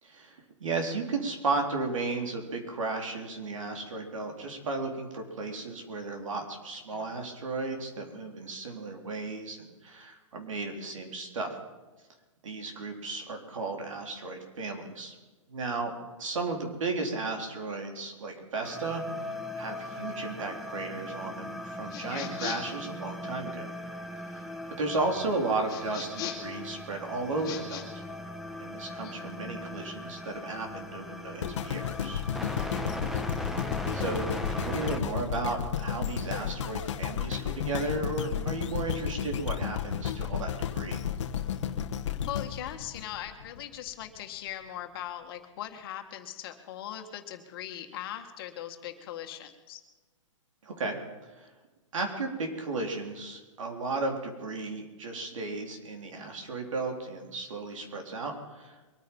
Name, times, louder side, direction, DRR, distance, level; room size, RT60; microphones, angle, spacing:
voice 1, 0.0-11.6 12.4-15.1 15.5-23.7 24.3-24.4 24.8-28.0 28.6-32.2 33.9-41.0 50.6-51.5 51.9-58.8, right 3 dB, 75° right, 3 dB, 4.0 m, -34 dB
sound 1, 18.6-35.0, left 1 dB, ahead, 1.1 m, -39 dB
sound 2, 21.9-22.8 25.7-26.6 27.4-27.8, left 9 dB, 25° left, 2.7 m, -38 dB
sound 3, 31.4-43.6 44.2-44.3, left 9 dB, 65° left, 1.2 m, -33 dB
voice 2, 42.3-49.8, left 11 dB, 45° left, 6 dB, 1.8 m, -40 dB
23.5 x 9.5 x 5.6 m, 1.2 s
hypercardioid pair, 145°, 17 cm